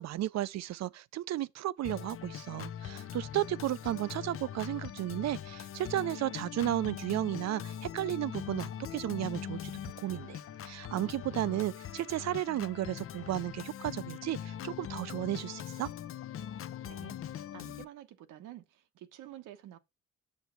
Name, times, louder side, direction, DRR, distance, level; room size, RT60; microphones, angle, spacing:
voice 1, 0.0-10.4 10.6-15.9, right 14 dB, 60° right, 0.5 m, -34 dB
Organ, 1.8-17.8, left 10 dB, 45° left, 0.5 m, -42 dB
voice 2, 16.8-19.8, right 12 dB, 90° right, 1.0 m, -50 dB
6.8 x 6.3 x 4.5 m
cardioid pair, 90°, 30 cm